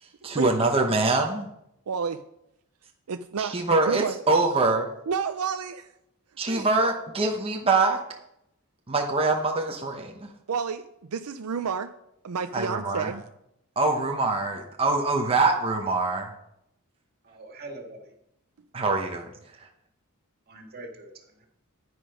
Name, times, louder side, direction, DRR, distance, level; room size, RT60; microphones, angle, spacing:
voice 1, 0.0-1.5 3.4-4.9 6.4-8.0 8.9-10.3 12.5-13.1 13.8-16.3 18.7-19.7, right 3 dB, 25° right, 2 dB, 1.0 m, -24 dB
voice 2, 1.9-2.2 3.1-3.6 3.9-4.1 5.1-5.9 6.5-6.7 10.5-11.9 12.2-13.2, right 6 dB, 80° right, 9 dB, 0.5 m, -30 dB
voice 3, 17.2-18.1 20.5-21.5, right 2 dB, 45° right, 2 dB, 2.1 m, -43 dB
10.0 x 9.8 x 5.1 m, 0.80 s
head